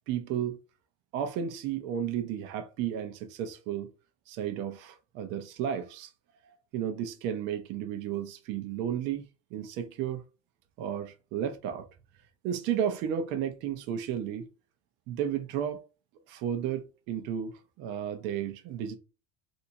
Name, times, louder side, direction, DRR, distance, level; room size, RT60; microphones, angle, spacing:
voice 1, 0.1-0.6 1.1-3.9 4.3-6.1 6.7-9.2 9.5-10.2 10.8-11.9 12.4-14.5 15.1-15.8 16.3-17.5 17.8-19.0, right 9 dB, 65° right, 0.8 m, -33 dB
3.4 x 2.7 x 2.8 m
supercardioid pair, 125°, 20 cm